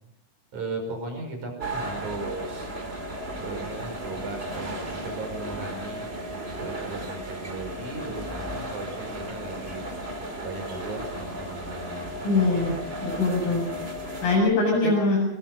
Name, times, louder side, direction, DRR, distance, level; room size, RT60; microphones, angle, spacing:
voice 1, 0.5-2.7 3.4-6.1 6.6-9.9 10.4-12.6 13.5-13.6 14.8-14.9, right 3 dB, 60° right, 4 dB, 6.9 m, -37 dB
sound 1, 1.6-14.4, right 1 dB, 20° right, 2.7 m, -35 dB
voice 2, 12.2-12.7 13.0-13.6 14.2-15.2, left 3 dB, 90° left, -2 dB, 9.5 m, -22 dB
22.5 x 22.5 x 5.5 m, 0.78 s
omnidirectional pair, 4.0 m